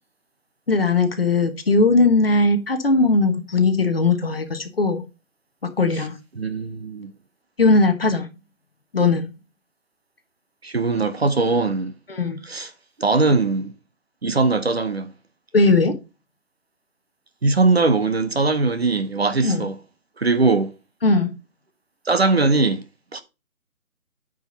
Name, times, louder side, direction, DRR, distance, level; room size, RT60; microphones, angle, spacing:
voice 1, 0.7-5.0 5.8-6.2 7.6-8.3 8.9-9.3 12.1-12.4 15.5-15.9 19.4-19.6 21.0-21.3, left 3 dB, 40° left, 1.3 m, -18 dB
voice 2, 6.4-7.1 10.6-11.9 12.4-12.7 13.0-13.7 14.2-15.1 17.4-19.8 20.2-20.7 22.1-22.8 23.1-23.2, right 3 dB, 45° right, 0.9 m, -20 dB
9.2 x 5.2 x 4.0 m
hypercardioid pair, 175°, 42 cm